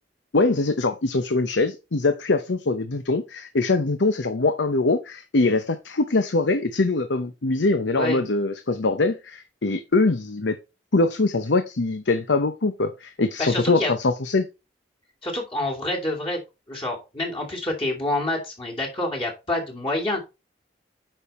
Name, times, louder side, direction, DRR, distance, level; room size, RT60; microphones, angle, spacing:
voice 1, 0.3-10.6 10.9-14.4, left 3 dB, 80° left, 0.8 m, -23 dB
voice 2, 13.4-13.9 15.2-16.4 16.7-20.2, left 1 dB, 30° left, 2.7 m, -27 dB
9.0 x 5.5 x 4.2 m
head